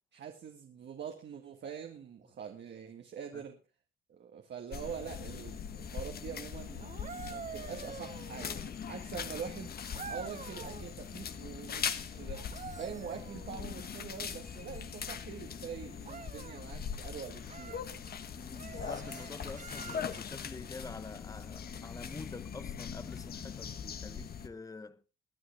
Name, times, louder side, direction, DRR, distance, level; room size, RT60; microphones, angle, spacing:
voice 1, 0.1-3.6 4.1-7.0 7.2-8.5 8.9-9.7 10.1-12.4 12.8-18.1, right 7 dB, 60° right, 1.9 m, -44 dB
sound 1, 4.7-24.5, left 7 dB, 50° left, 1.3 m, -41 dB
sound 2, 6.8-8.8 9.9-10.9 12.3-13.9 16.0-16.6 17.5-17.9 18.6-20.4 22.2-22.4, right 6 dB, 40° right, 1.1 m, -47 dB
voice 2, 18.3-25.0, left 3 dB, 15° left, 0.9 m, -47 dB
21.5 x 9.7 x 3.5 m
cardioid pair, 90°, 20 cm